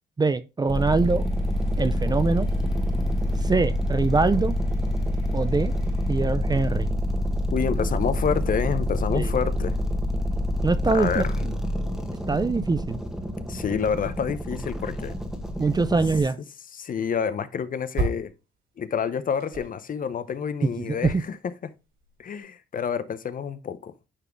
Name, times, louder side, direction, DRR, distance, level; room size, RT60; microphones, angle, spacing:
voice 1, 0.2-1.2 1.8-2.5 3.4-4.6 5.3-5.7 6.1-6.9 9.1-9.3 10.6-11.5 12.3-13.0 15.6-16.4 20.8-21.1, right 3 dB, 20° right, 0.5 m, -23 dB
sound 1, 0.7-16.2, equal, ahead, 1.5 m, -27 dB
sound 2, 1.0-6.3, left 4 dB, 75° left, 3.5 m, -47 dB
voice 2, 7.5-9.7 10.9-11.4 13.5-15.1 16.7-18.3 18.8-21.7 22.2-23.9, left 7 dB, 45° left, 0.7 m, -28 dB
sound 3, 16.8-18.4 18.7-22.4, right 2 dB, 75° right, 3.3 m, -34 dB
9.8 x 3.6 x 3.5 m
cardioid pair, 90°, 20 cm